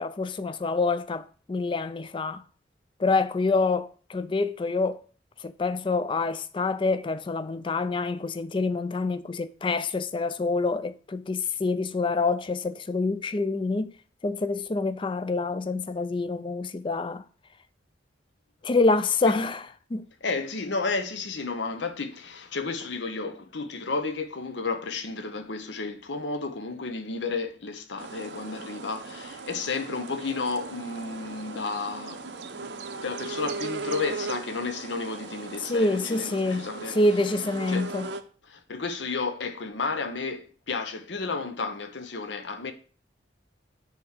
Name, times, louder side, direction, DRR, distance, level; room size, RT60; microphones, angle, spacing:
voice 1, 0.0-2.4 3.0-5.0 5.4-13.9 14.2-17.2 18.6-19.6 19.9-20.0 35.7-36.6 37.0-38.1, left 3 dB, 30° left, 0.4 m, -26 dB
voice 2, 20.2-37.0 37.7-37.9 38.4-42.7, left 4 dB, 80° left, 0.9 m, -32 dB
sound 1, 28.0-38.2, right 4 dB, 70° right, 0.7 m, -38 dB
7.4 x 3.5 x 6.4 m
head